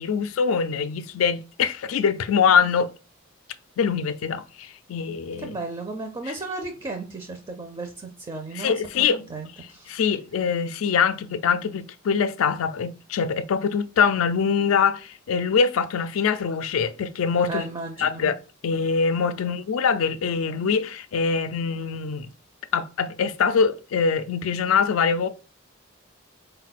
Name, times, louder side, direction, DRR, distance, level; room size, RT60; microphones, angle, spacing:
voice 1, 0.0-2.9 3.8-5.5 8.6-9.2 9.9-17.6 18.0-18.4 18.6-22.3 22.7-25.3, left 6 dB, 75° left, 0.4 m, -23 dB
voice 2, 5.4-10.0 17.4-18.3 19.4-19.6, right 3 dB, 25° right, 0.5 m, -35 dB
4.1 x 2.2 x 4.0 m
head